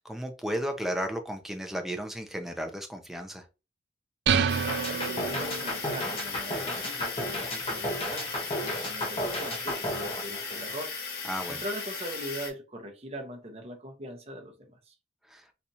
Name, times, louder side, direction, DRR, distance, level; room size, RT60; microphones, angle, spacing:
voice 1, 0.0-3.4 11.2-11.6 15.3-15.5, equal, ahead, 0.5 m, -34 dB
sound 1, 4.3-5.9, right 6 dB, 70° right, 0.4 m, -28 dB
sound 2, 4.5-12.5, left 5 dB, 55° left, 1.0 m, -37 dB
voice 2, 4.6-10.9 11.5-14.9, right 1 dB, 35° right, 0.7 m, -41 dB
sound 3, 4.7-10.9, equal, 30° left, 0.7 m, -33 dB
4.2 x 2.4 x 2.7 m
head